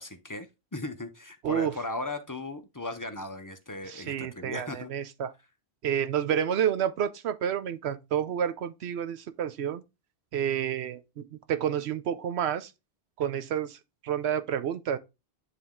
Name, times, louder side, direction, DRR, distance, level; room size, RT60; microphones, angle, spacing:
voice 1, 0.0-4.9, left 2 dB, 20° left, 0.6 m, -37 dB
voice 2, 3.9-5.3 5.8-9.8 10.3-12.7 13.2-13.8 14.0-15.0, right 9 dB, 85° right, 0.9 m, -29 dB
9.3 x 3.6 x 3.6 m
omnidirectional pair, 1.1 m